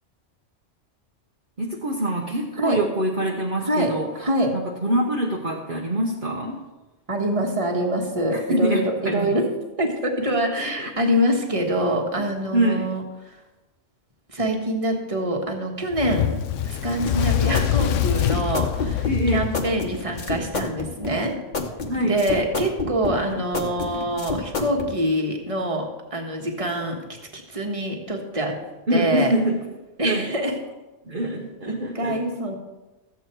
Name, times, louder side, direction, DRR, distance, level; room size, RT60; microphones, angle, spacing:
voice 1, 1.6-4.1 4.5-6.6 8.3-9.4 10.2-10.3 10.8-10.9 12.5-12.9 19.0-19.5 21.9-22.2 28.9-29.6 30.0-30.3 31.0-32.2, right 1 dB, 45° right, -2 dB, 1.2 m, -24 dB
voice 2, 3.6-4.5 7.1-9.4 9.8-13.3 14.3-19.1 19.3-21.3 22.0-27.0 27.3-28.5 28.9-29.3 30.0-30.5 31.7-32.6, right 1 dB, 30° right, 2 dB, 1.6 m, -25 dB
Fire, 15.9-20.5, left 11 dB, 85° left, 1.0 m, -25 dB
sound 1, 17.0-24.9, left 3 dB, 40° left, 1.2 m, -29 dB
13.5 x 8.2 x 4.6 m, 1.1 s
omnidirectional pair, 1.2 m